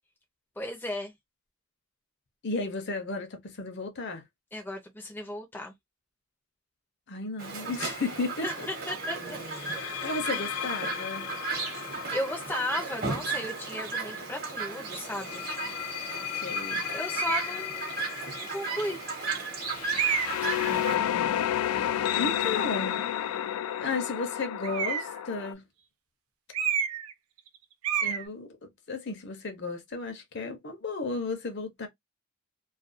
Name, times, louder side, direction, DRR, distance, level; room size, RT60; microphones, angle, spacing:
voice 1, 0.6-1.1 4.5-5.7 8.4-9.4 10.3-10.5 12.1-15.4 16.9-17.9 18.3-19.0, left 1 dB, 10° left, 0.5 m, -35 dB
voice 2, 2.4-4.2 7.1-8.7 9.7-11.3 16.4-16.8 20.7-21.4 21.7-23.1 23.8-25.6 28.0-28.6 28.9-31.9, left 3 dB, 50° left, 0.7 m, -34 dB
Chirp tweet, 7.4-21.0, right 4 dB, 40° right, 0.9 m, -35 dB
sound 1, 7.7-8.0 9.5-14.3 15.1-25.5, left 11 dB, 80° left, 0.3 m, -33 dB
sound 2, 17.2-17.6 18.4-18.5 19.9-20.5 24.6-25.2 26.5-27.1 27.4-27.6 27.8-28.2, right 8 dB, 80° right, 0.4 m, -29 dB
2.4 x 2.2 x 2.5 m
head